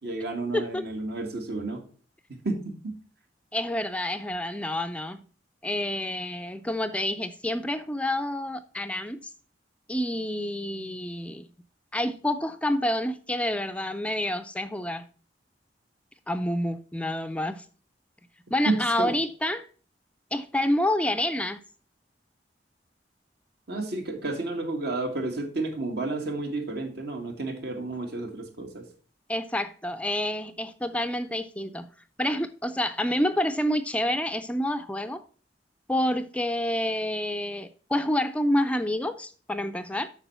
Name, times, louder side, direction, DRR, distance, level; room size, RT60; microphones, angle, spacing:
voice 1, 0.0-1.8 2.4-2.6 2.8-2.9 18.7-19.1 23.7-28.8, right 2 dB, 65° right, 2.2 m, -31 dB
voice 2, 0.5-0.8 3.5-5.2 5.6-9.3 9.9-11.5 11.9-15.0 16.3-17.6 18.5-19.7 20.3-21.6 29.3-31.9 32.2-35.2 35.9-40.1, left 1 dB, 5° left, 0.4 m, -28 dB
8.2 x 6.2 x 5.6 m
head